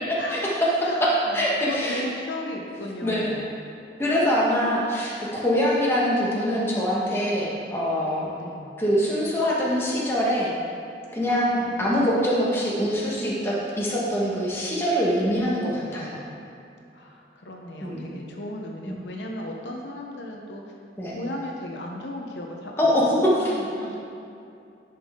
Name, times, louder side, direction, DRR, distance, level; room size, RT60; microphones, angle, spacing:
voice 1, 0.1-0.4 1.0-2.0 3.0-3.4 4.0-8.3 8.8-10.5 11.1-16.2 17.8-18.1 18.8-19.0 21.0-21.2 22.8-23.3, equal, 15° left, -6 dB, 1.4 m, -24 dB
voice 2, 0.8-3.6 4.7-4.9 8.4-8.8 11.5-12.2 16.9-20.7 21.1-22.9 23.4-24.0, left 1 dB, 85° left, 0 dB, 0.9 m, -36 dB
10.5 x 5.6 x 3.7 m, 2.5 s
head